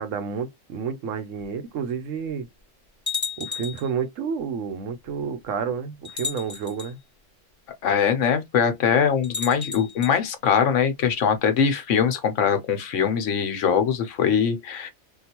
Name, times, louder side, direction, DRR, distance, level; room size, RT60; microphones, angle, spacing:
voice 1, 0.0-2.5 3.4-7.0, right 6 dB, 75° right, 1.0 m, -30 dB
sound 1, 1.4-1.5 2.3-2.4 3.1-3.9 5.1-5.2 6.0-6.9 9.2-10.1, left 5 dB, 20° left, 0.5 m, -32 dB
voice 2, 7.8-14.9, left 7 dB, 75° left, 1.1 m, -22 dB
3.6 x 2.3 x 2.8 m
omnidirectional pair, 1.3 m